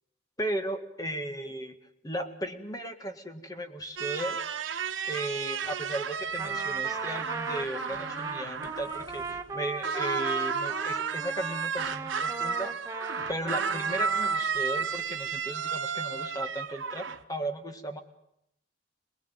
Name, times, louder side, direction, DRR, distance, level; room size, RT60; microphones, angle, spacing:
voice 1, 0.4-1.8 2.0-4.4 5.1-12.7 13.3-18.0, right 1 dB, 20° left, 7 dB, 1.9 m, -36 dB
sound 1, 4.0-9.5 9.8-17.2, right 6 dB, 85° right, 1.2 m, -32 dB
Trumpet, 6.4-14.5, right 4 dB, 15° right, 1.0 m, -38 dB
27.0 x 19.5 x 9.0 m, 0.78 s
head